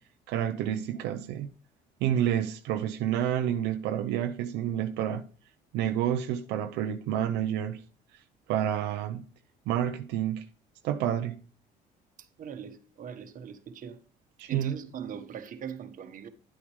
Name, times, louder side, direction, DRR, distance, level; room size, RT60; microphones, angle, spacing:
voice 1, 0.3-1.5 2.0-5.2 5.7-7.8 8.5-9.2 9.7-10.5 10.8-11.4 14.4-14.7, right 10 dB, 90° right, 0.7 m, -29 dB
voice 2, 12.2-14.0 14.5-16.3, right 8 dB, 50° right, 1.3 m, -40 dB
11.0 x 8.7 x 3.2 m
cardioid pair, 110°, 17 cm